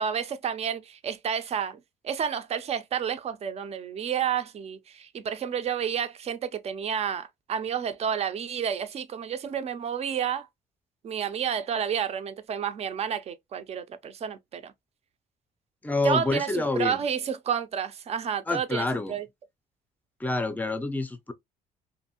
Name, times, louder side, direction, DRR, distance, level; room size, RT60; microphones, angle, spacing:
voice 1, 0.0-10.5 11.0-14.7 16.0-19.3, right 8 dB, 40° right, 0.5 m, -30 dB
voice 2, 15.8-17.0 18.5-19.2 20.2-21.3, left 3 dB, 10° left, 0.5 m, -28 dB
2.6 x 2.5 x 2.7 m
cardioid pair, 110°, 17 cm